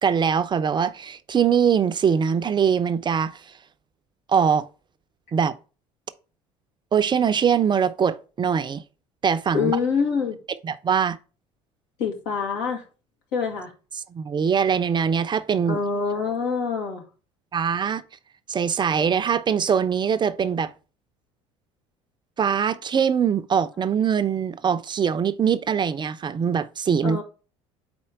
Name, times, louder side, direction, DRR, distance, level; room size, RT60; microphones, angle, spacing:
voice 1, 0.0-3.4 4.3-4.6 5.3-5.6 6.9-8.8 9.2-9.7 10.6-11.2 14.1-15.8 17.5-18.0 18.5-20.7 22.4-27.2, right 7 dB, 30° right, 0.5 m, -22 dB
voice 2, 9.5-10.4 12.0-12.8 13.3-13.7 15.7-17.0 27.0-27.2, left 5 dB, 75° left, 1.9 m, -25 dB
4.4 x 4.3 x 5.7 m
hypercardioid pair, 70°, 15 cm